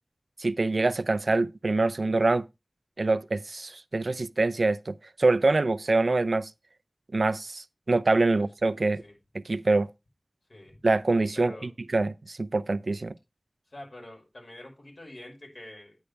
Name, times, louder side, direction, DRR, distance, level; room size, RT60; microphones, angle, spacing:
voice 1, 0.4-2.5 3.0-6.5 7.1-9.0 9.5-9.9 10.8-13.1, right 3 dB, 85° right, 0.5 m, -25 dB
voice 2, 8.3-9.2 10.5-10.8 11.3-11.7 13.7-16.0, left 1 dB, 70° left, 5.8 m, -46 dB
9.8 x 9.7 x 3.3 m
wide cardioid pair, 60°, 0 cm